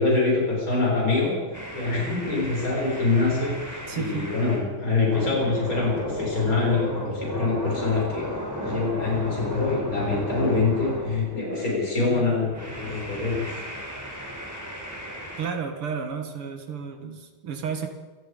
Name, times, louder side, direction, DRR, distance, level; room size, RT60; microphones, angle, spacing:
voice 1, 0.0-1.4 1.7-8.3 8.6-13.5, left 3 dB, 40° left, -3 dB, 7.2 m, -25 dB
sound 1, 1.5-4.7 5.1-11.8 12.5-15.5, equal, 10° right, 3.8 m, -34 dB
voice 2, 3.9-4.3 15.4-17.9, right 6 dB, 90° right, 5 dB, 2.7 m, -32 dB
28.5 x 17.5 x 5.3 m, 1.3 s
omnidirectional pair, 2.3 m